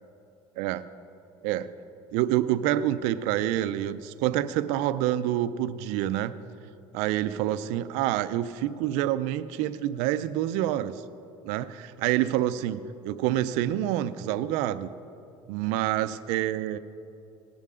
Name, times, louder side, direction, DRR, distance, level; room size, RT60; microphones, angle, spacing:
voice 1, 2.1-6.3 6.9-10.9 11.4-14.9 15.5-16.8, right 13 dB, 70° right, 13 dB, 0.5 m, -27 dB
19.0 x 10.5 x 3.7 m, 2.7 s
cardioid pair, 180°, 12 cm